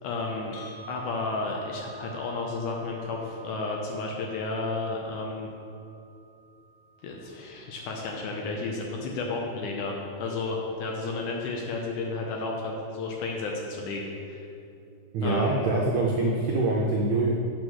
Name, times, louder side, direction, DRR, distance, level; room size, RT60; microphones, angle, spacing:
voice 1, 0.0-0.6 0.9-5.5 7.0-14.4 15.2-15.7, left 3 dB, 75° left, 0 dB, 2.0 m, -32 dB
sound 1, 0.5-8.6, right 3 dB, 60° left, 1.5 m, -49 dB
voice 2, 15.1-17.3, right 2 dB, 80° right, -2 dB, 1.6 m, -24 dB
7.9 x 5.0 x 6.2 m, 2.6 s
omnidirectional pair, 4.1 m